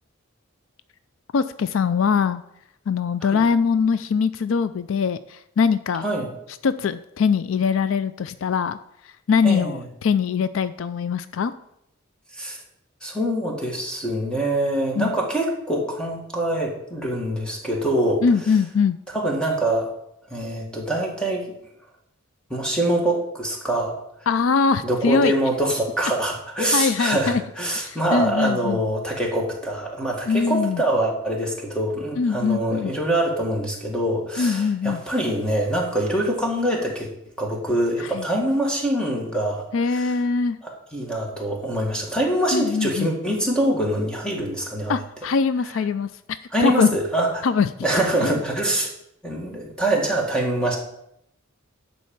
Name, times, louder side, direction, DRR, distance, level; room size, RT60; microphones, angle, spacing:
voice 1, 1.3-2.4 2.9-6.1 6.6-8.8 9.3-11.5 15.0-15.1 18.2-19.0 24.3-25.3 26.7-27.4 27.8-28.8 30.3-30.8 32.2-32.9 34.4-35.0 38.0-38.3 39.7-40.6 42.5-43.1 44.9-46.1 46.6-46.9 47.4-47.7 48.2-48.4, left 5 dB, 70° left, 13 dB, 0.4 m, -22 dB
voice 2, 9.4-9.8 12.3-12.6 13.0-18.2 19.1-19.9 20.3-21.5 22.5-24.0 24.8-37.1 37.4-39.6 39.9-40.1 40.6-44.9 46.5-47.5 47.8-48.9 49.2-50.8, right 1 dB, 5° left, -1 dB, 1.8 m, -24 dB
11.0 x 4.2 x 7.1 m, 0.78 s
head